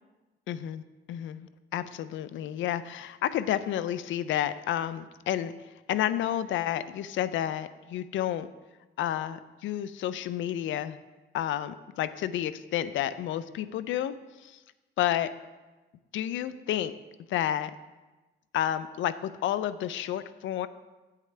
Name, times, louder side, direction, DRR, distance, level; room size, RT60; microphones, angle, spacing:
voice 1, 0.5-0.8 1.1-5.5 5.9-8.5 9.0-11.0 11.3-14.1 14.4-14.6 15.0-15.3 16.1-16.9 17.3-17.7 18.5-20.7, left 11 dB, 75° left, 14 dB, 0.5 m, -30 dB
10.0 x 8.3 x 3.3 m, 1.2 s
cardioid pair, 90°, 20 cm